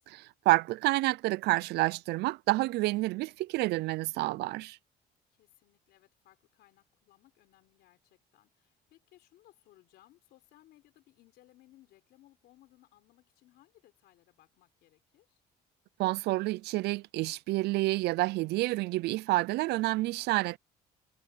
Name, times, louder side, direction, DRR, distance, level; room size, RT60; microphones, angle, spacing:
voice 1, 0.1-4.8 16.0-20.6, right 19 dB, 80° right, 0.4 m, -29 dB
voice 2, 5.3-15.4, left 15 dB, 80° left, 4.2 m, -63 dB
cardioid pair, 110°, 17 cm